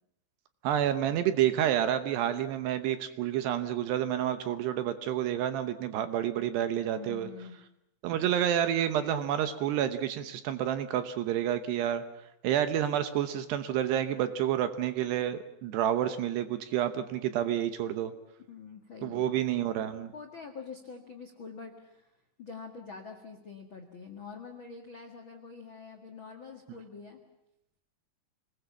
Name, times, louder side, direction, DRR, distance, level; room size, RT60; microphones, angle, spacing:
voice 1, 0.6-7.3 8.0-12.0 12.4-18.1 19.0-20.1, right 10 dB, 75° right, 10 dB, 2.8 m, -29 dB
voice 2, 6.9-7.6 18.5-19.4 20.1-22.1 22.4-27.2, left 5 dB, 75° left, 3 dB, 1.1 m, -45 dB
26.5 x 20.0 x 7.2 m, 0.84 s
omnidirectional pair, 5.5 m